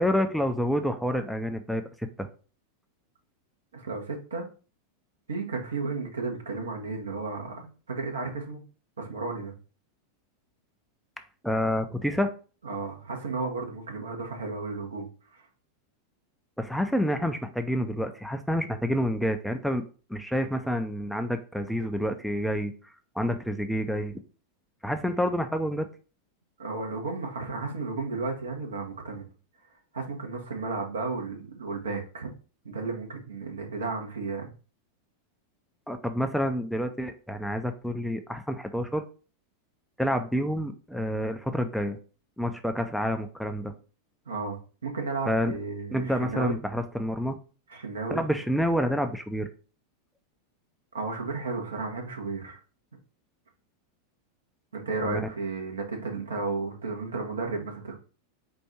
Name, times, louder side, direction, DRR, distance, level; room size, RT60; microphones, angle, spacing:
voice 1, 0.0-2.3 11.4-12.3 16.6-19.8 20.1-22.7 23.2-24.2 24.8-25.9 35.9-39.0 40.0-42.0 42.4-43.7 45.3-45.5 45.9-47.4 48.1-49.5 55.0-55.2, equal, ahead, 0.5 m, -28 dB
voice 2, 3.7-4.4 5.3-8.6 9.0-9.5 12.6-15.4 26.6-29.3 29.9-32.3 32.6-34.5 44.3-44.6 44.8-46.5 47.7-48.2 50.9-52.6 54.7-57.9, right 3 dB, 80° right, 1.2 m, -33 dB
4.6 x 2.6 x 4.3 m
figure-of-eight pair, 90°, 0 cm